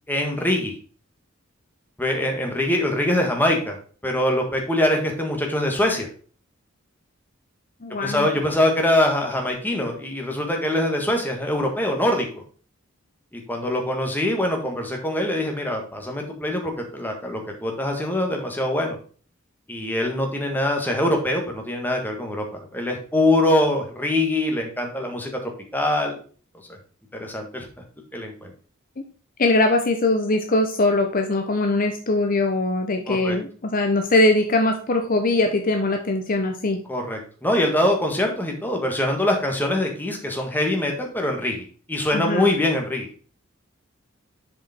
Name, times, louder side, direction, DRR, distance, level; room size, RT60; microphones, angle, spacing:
voice 1, 0.1-0.8 2.0-3.8 4.0-6.1 8.0-12.3 13.3-19.0 19.7-22.4 22.7-25.3 25.7-26.2 27.1-27.6 28.1-28.5 33.1-33.4 36.9-43.1, left 1 dB, 10° left, 2 dB, 1.6 m, -23 dB
voice 2, 7.8-8.3 29.0-29.1 29.4-36.8 42.1-42.5, left 2 dB, 45° left, 5 dB, 0.8 m, -21 dB
7.1 x 5.0 x 4.3 m, 0.41 s
head